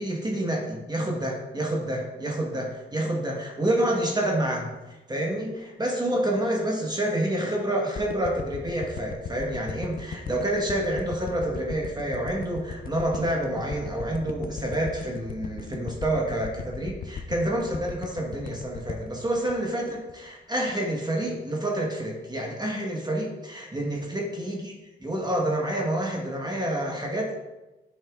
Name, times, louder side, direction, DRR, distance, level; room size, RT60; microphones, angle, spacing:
voice 1, 0.0-24.7 25.0-27.4, right 1 dB, 20° right, -1 dB, 1.3 m, -28 dB
sound 1, 8.0-20.3 20.7-20.8, left 6 dB, 45° left, 0.5 m, -37 dB
7.7 x 5.5 x 2.4 m, 1.1 s
supercardioid pair, 50°, 20 cm